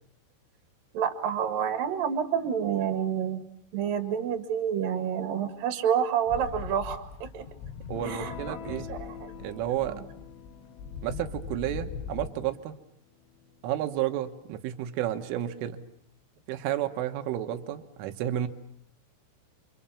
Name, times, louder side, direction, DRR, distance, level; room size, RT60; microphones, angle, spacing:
voice 1, 0.9-3.4 3.7-7.4 8.1-9.3, right 8 dB, 55° right, 7 dB, 3.0 m, -29 dB
sound 1, 6.3-12.3, left 6 dB, 75° left, 4.4 m, -40 dB
Electric guitar / Strum, 7.9-16.2, left 8 dB, 50° left, 3.8 m, -48 dB
voice 2, 7.9-8.9 9.4-10.0 11.0-12.8 13.6-15.9 16.5-18.5, right 12 dB, 85° right, 7 dB, 3.8 m, -31 dB
29.5 x 26.5 x 7.1 m, 0.71 s
omnidirectional pair, 5.6 m